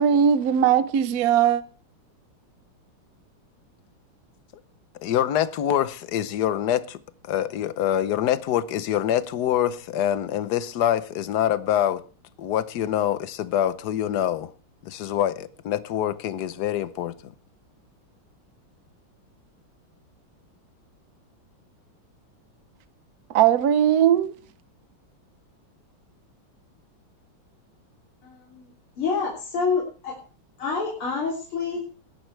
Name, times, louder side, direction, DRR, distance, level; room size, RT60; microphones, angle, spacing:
voice 1, 0.0-1.6 23.3-24.3, right 9 dB, 55° right, 1.1 m, -19 dB
voice 2, 5.0-7.0 7.3-12.0 12.4-14.5 14.8-17.3, left 11 dB, 60° left, 1.2 m, -25 dB
voice 3, 28.2-28.7 29.0-30.2 30.6-31.8, left 5 dB, 85° left, 4.0 m, -27 dB
20.0 x 11.0 x 3.3 m
omnidirectional pair, 2.3 m